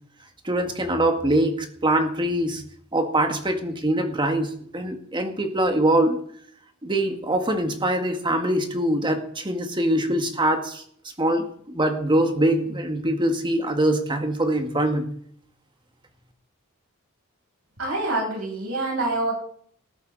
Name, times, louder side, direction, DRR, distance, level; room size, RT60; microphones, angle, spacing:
voice 1, 0.4-1.6 1.8-2.6 2.9-6.2 6.8-10.8 11.2-15.1, right 1 dB, 25° right, 5 dB, 1.9 m, -23 dB
voice 2, 17.8-19.3, right 2 dB, 80° right, -2 dB, 8.0 m, -26 dB
19.0 x 14.0 x 4.1 m, 0.63 s
head